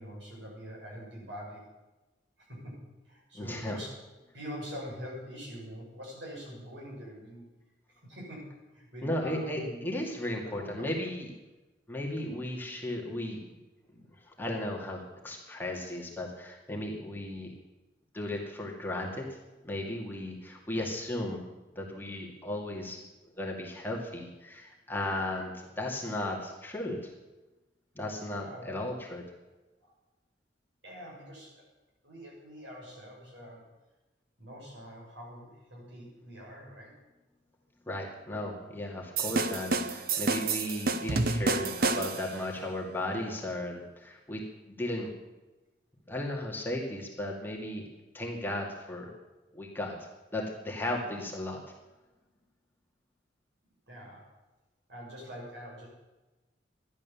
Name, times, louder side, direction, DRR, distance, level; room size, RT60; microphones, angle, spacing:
voice 1, 0.0-1.8 2.4-3.9 4.3-7.5 7.9-9.8 10.2-11.1 28.3-28.8 30.8-31.6 32.0-33.7 34.4-36.9 53.9-54.3 54.9-55.9, equal, 80° right, -2 dB, 6.6 m, -44 dB
voice 2, 3.3-3.8 9.0-11.3 11.9-13.4 13.9-17.5 18.1-19.4 19.6-21.5 21.8-23.0 23.4-27.1 28.0-29.2 37.9-44.4 44.7-45.1 46.1-47.9 48.1-49.1 49.5-50.0 50.3-51.6, left 1 dB, 10° left, -2 dB, 2.2 m, -35 dB
sound 1, 39.2-42.4, right 3 dB, 55° right, 0.9 m, -29 dB
13.5 x 11.0 x 7.1 m, 1.1 s
head